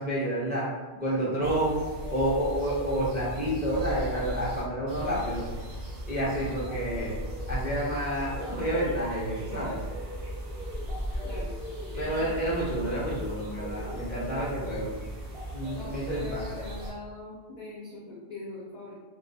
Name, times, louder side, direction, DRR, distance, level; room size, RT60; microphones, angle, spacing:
voice 1, 0.0-1.8 2.1-5.5 6.1-7.2 7.5-9.8 12.0-14.9 15.5-16.6, right 1 dB, 15° right, -7 dB, 0.4 m, -29 dB
sound 1, 1.4-16.9, equal, 60° right, 0.8 m, -37 dB
voice 2, 11.2-11.6 11.9-12.5 15.7-18.9, left 3 dB, 60° left, -5 dB, 0.4 m, -42 dB
2.3 x 2.2 x 2.6 m, 1.3 s
omnidirectional pair, 1.2 m